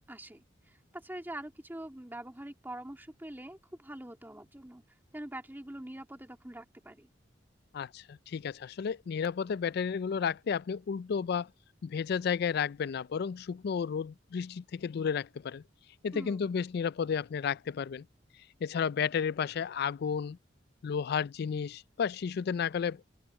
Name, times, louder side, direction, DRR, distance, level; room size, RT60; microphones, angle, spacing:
voice 1, 0.1-4.8 5.1-7.1 16.1-16.5, right 1 dB, 10° right, 2.2 m, -44 dB
voice 2, 7.7-11.5 11.8-15.6 16.0-18.1 18.6-20.4 20.8-23.0, left 6 dB, 60° left, 0.3 m, -32 dB
open air
head